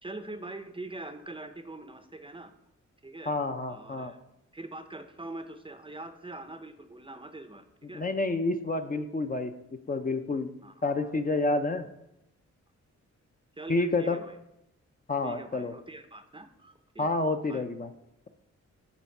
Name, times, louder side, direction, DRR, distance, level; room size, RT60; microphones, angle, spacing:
voice 1, 0.0-2.5 3.0-3.3 3.7-4.2 4.5-8.0 10.6-11.1 13.6-14.4 15.2-17.1 17.5-17.6, right 2 dB, 20° right, 8 dB, 0.6 m, -43 dB
voice 2, 3.3-4.1 7.9-9.5 9.9-10.5 10.8-11.9 13.7-14.2 15.1-15.7 17.0-17.9, left 2 dB, 30° left, 7 dB, 0.5 m, -29 dB
9.6 x 3.5 x 5.8 m, 0.84 s
cardioid pair, 100°, 29 cm